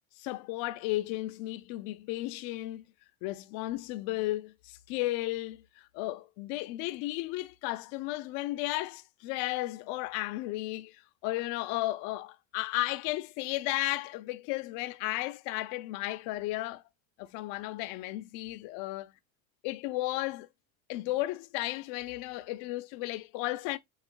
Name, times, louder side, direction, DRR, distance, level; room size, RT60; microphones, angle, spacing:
voice 1, 0.2-2.8 3.2-16.8 17.2-19.1 19.6-20.5 20.9-23.8, left 18 dB, 60° left, 0.6 m, -34 dB
7.1 x 2.5 x 2.2 m
supercardioid pair, 105°, 43 cm